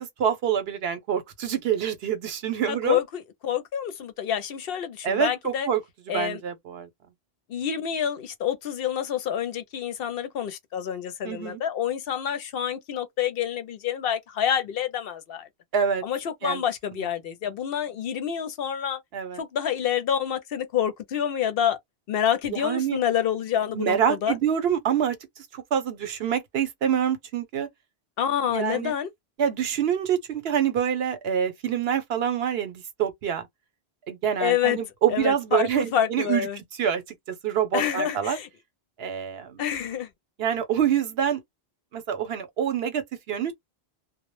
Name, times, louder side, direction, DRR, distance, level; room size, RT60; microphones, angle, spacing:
voice 1, 0.2-3.0 5.0-5.8 6.1-6.9 11.2-11.6 15.7-16.0 16.4-16.6 19.1-19.4 22.5-23.0 23.7-25.2 25.5-27.7 28.5-28.9 29.4-33.5 34.1-36.5 36.8-37.0 37.4-38.4 39.0-39.6 40.4-41.4 41.9-43.5, right 8 dB, 70° right, 0.9 m, -26 dB
voice 2, 2.7-5.7 6.1-6.4 7.5-15.5 16.0-19.0 19.4-21.8 22.1-24.4 28.2-29.1 34.4-34.8 35.1-36.6 37.7-38.5 39.6-40.1, left 9 dB, 70° left, 0.7 m, -27 dB
2.1 x 2.0 x 3.0 m
omnidirectional pair, 1.1 m